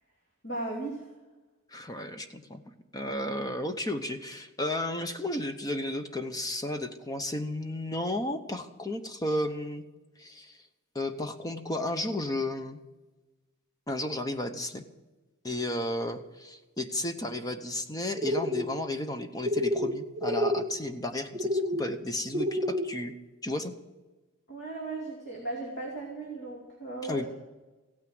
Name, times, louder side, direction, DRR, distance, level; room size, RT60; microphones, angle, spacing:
voice 1, 0.4-1.1 24.5-27.3, right 2 dB, 50° left, -1 dB, 2.6 m, -36 dB
voice 2, 1.7-2.6 2.9-9.8 10.2-10.6 10.9-12.8 13.9-14.8 15.4-23.1 23.4-23.7 27.0-27.3, left 1 dB, 15° left, 8 dB, 0.8 m, -33 dB
sound 1, 18.2-18.7 19.4-19.9 20.2-20.7 21.3-21.8 22.3-22.9, left 1 dB, 25° right, 1.7 m, -28 dB
16.0 x 9.4 x 7.8 m, 1.2 s
head